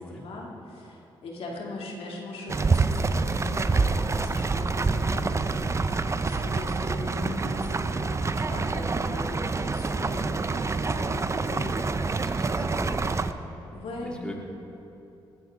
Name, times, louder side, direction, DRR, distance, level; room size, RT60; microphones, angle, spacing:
voice 1, 0.0-12.5 13.7-14.4, left 2 dB, 70° left, -2 dB, 2.4 m, -39 dB
sound 1, 2.5-13.3, right 4 dB, 30° right, 0.6 m, -27 dB
voice 2, 12.2-13.4 14.0-14.4, equal, 10° left, -2 dB, 2.6 m, -39 dB
19.5 x 13.5 x 3.7 m, 2.9 s
supercardioid pair, 65°, 10 cm